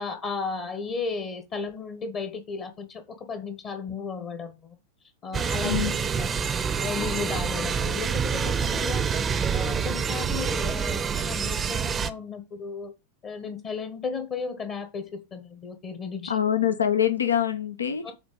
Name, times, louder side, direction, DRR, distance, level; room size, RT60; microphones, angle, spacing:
voice 1, 0.0-4.8 5.2-5.9 6.2-6.5 6.8-12.9 13.2-16.4 18.0-18.1, left 5 dB, 30° left, 1.3 m, -34 dB
sound 1, 5.3-12.1, right 6 dB, 20° right, 0.7 m, -27 dB
voice 2, 16.3-18.1, left 9 dB, 70° left, 1.0 m, -24 dB
7.9 x 4.0 x 5.2 m
figure-of-eight pair, 90°, 0 cm